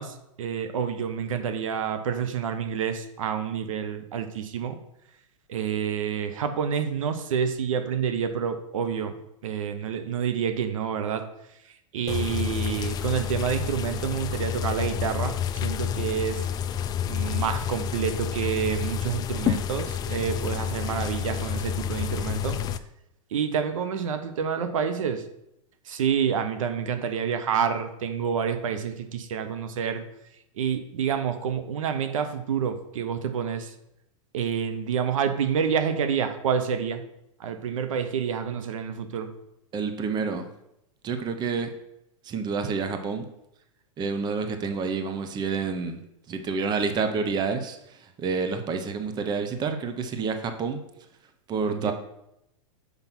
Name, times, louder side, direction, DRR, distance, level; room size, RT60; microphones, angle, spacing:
voice 1, 0.0-4.8 5.5-9.1 9.4-11.3 11.9-16.4 17.1-22.6 23.3-25.2 25.9-30.0 30.6-33.7 34.3-37.0 37.4-39.3 51.7-51.9, right 7 dB, 75° right, 8 dB, 0.9 m, -28 dB
sound 1, 12.1-22.8, left 9 dB, 25° left, 0.4 m, -29 dB
voice 2, 39.7-40.5 41.0-41.7 42.2-43.3 44.0-46.0 46.3-50.8 51.5-51.9, right 5 dB, 25° right, 7 dB, 0.9 m, -28 dB
6.1 x 5.2 x 6.1 m, 0.82 s
hypercardioid pair, 125°, 17 cm